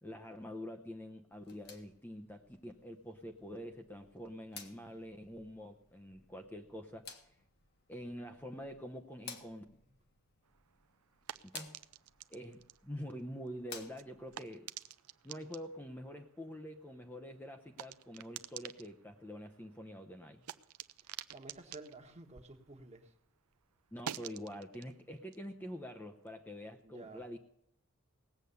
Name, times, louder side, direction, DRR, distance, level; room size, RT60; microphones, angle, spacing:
voice 1, 0.0-7.1 7.9-9.6 11.5-11.8 12.3-14.7 15.2-20.4 23.9-27.4, equal, 10° left, 0.7 m, -46 dB
sound 1, 1.3-14.4, left 5 dB, 50° left, 1.4 m, -55 dB
sound 2, 10.4-23.2 23.5-26.7, right 10 dB, 80° right, 0.6 m, -51 dB
voice 2, 21.3-23.1 26.8-27.2, right 3 dB, 30° right, 1.4 m, -51 dB
18.5 x 8.1 x 6.8 m
head